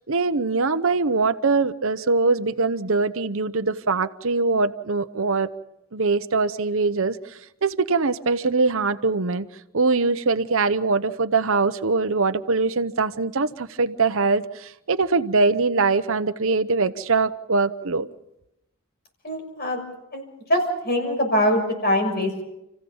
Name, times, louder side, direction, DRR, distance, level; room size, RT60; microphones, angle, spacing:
voice 1, 0.1-5.5 5.9-9.5 9.7-18.1, right 4 dB, 65° right, 0.9 m, -22 dB
voice 2, 19.2-19.8 20.1-20.2 20.5-22.4, equal, 45° left, 6.3 m, -23 dB
30.0 x 15.5 x 7.1 m
head